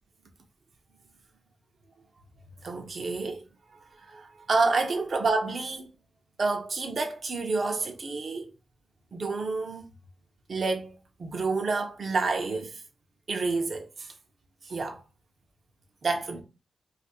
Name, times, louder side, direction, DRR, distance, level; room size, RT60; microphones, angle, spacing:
voice 1, 2.6-3.4 3.7-5.9 6.4-8.5 9.1-9.8 10.5-12.8 13.3-14.1 14.6-15.0 16.0-16.4, right 3 dB, 55° right, 0.6 m, -29 dB
2.6 x 2.4 x 4.1 m
cardioid pair, 75°, 0 cm